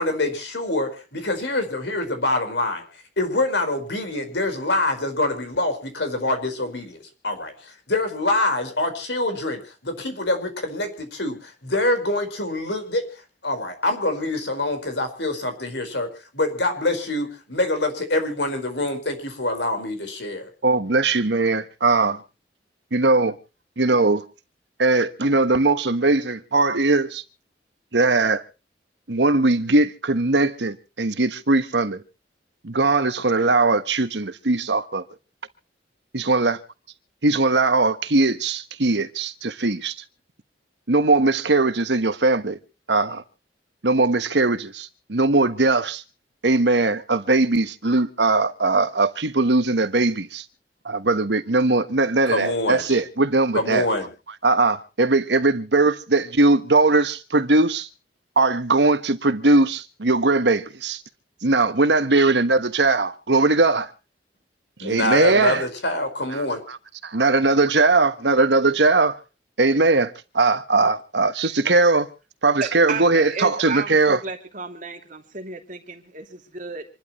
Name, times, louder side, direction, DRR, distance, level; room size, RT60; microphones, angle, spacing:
voice 1, 0.0-2.8 3.2-13.0 13.4-16.1 16.3-20.5 52.3-53.0 53.5-54.1 64.8-66.6, left 2 dB, 80° left, 4.8 m, -25 dB
voice 2, 20.6-22.2 22.9-23.3 23.8-24.2 24.8-27.2 27.9-28.4 29.1-32.0 32.6-35.0 36.1-36.6 37.2-40.0 40.9-42.6 42.9-43.2 43.8-46.0 46.4-50.4 50.8-53.9 54.4-57.9 58.4-61.0 61.4-63.9 64.8-65.6 66.4-66.8 67.0-69.2 69.6-72.1 72.4-74.2, right 3 dB, 70° right, 1.3 m, -20 dB
voice 3, 72.6-76.9, right 4 dB, 50° right, 2.7 m, -33 dB
27.0 x 12.0 x 3.2 m
head